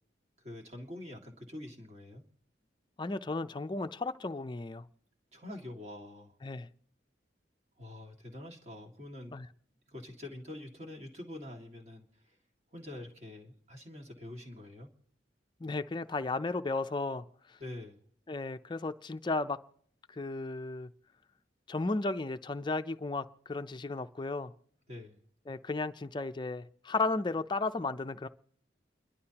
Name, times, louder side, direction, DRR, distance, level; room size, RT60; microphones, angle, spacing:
voice 1, 0.4-2.2 5.3-6.3 7.8-9.4 9.9-12.1 12.7-14.9 17.6-18.0 24.9-25.2, left 1 dB, 35° right, 2.0 m, -45 dB
voice 2, 3.0-4.8 6.4-6.7 9.3-9.5 15.6-17.6 18.3-19.6 20.1-20.9 21.7-24.5 25.5-28.3, left 3 dB, 25° left, 0.5 m, -34 dB
30.0 x 11.5 x 2.9 m
head